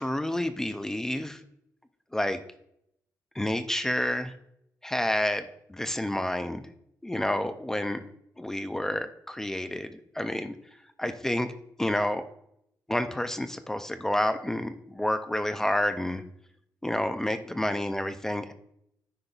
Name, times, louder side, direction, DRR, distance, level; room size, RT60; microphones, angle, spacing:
voice 1, 0.0-1.4 2.1-2.4 3.4-4.3 4.8-6.6 7.0-8.0 8.4-10.5 11.0-11.5 11.8-12.2 12.9-16.2 16.8-18.5, left 1 dB, 10° left, 9 dB, 0.3 m, -29 dB
9.7 x 5.2 x 2.3 m, 0.75 s
wide cardioid pair, 170°, 6 cm